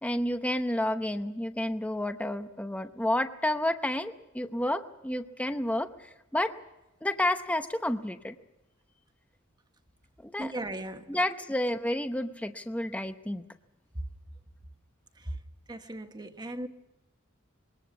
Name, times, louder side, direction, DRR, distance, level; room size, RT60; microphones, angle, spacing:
voice 1, 0.0-6.5 7.0-8.4 10.2-10.5 11.1-13.4, left 1 dB, 5° left, 0.8 m, -30 dB
voice 2, 10.4-11.1 15.2-15.4 15.7-16.7, right 1 dB, 20° right, 1.3 m, -37 dB
22.0 x 18.5 x 7.0 m
head